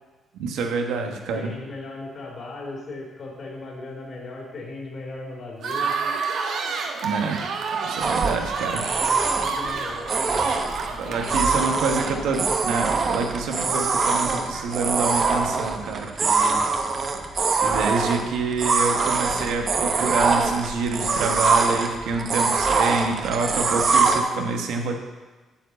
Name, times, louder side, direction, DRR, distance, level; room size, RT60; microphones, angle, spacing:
voice 1, 0.4-1.5 7.0-7.4 7.8-8.8 11.0-16.6 17.6-25.0, right 4 dB, 85° right, 3 dB, 1.2 m, -27 dB
voice 2, 1.3-5.9 8.7-10.6 10.9-12.2, left 2 dB, 55° left, -2 dB, 3.1 m, -37 dB
sound 1, 5.6-12.5, right 5 dB, 70° right, 1.2 m, -30 dB
sound 2, 8.0-24.2, right 4 dB, 45° right, 1.0 m, -23 dB
9.0 x 4.9 x 7.6 m, 1.3 s
cardioid pair, 90°, 0 cm